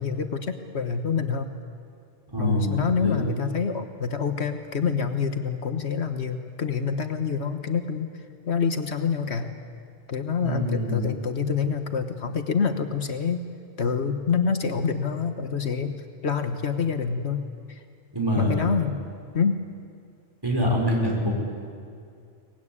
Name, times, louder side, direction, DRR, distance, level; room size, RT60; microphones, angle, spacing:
voice 1, 0.0-1.5 2.4-8.1 8.5-9.5 10.1-13.4 13.8-16.0 16.2-17.4 17.7-17.8 18.4-19.0 19.3-19.6, left 6 dB, 75° left, 7 dB, 1.5 m, -26 dB
voice 2, 2.3-3.3 10.4-11.1 18.1-18.7 20.4-21.4, left 1 dB, 20° right, -2 dB, 6.0 m, -25 dB
24.0 x 19.5 x 9.9 m, 2.3 s
omnidirectional pair, 1.2 m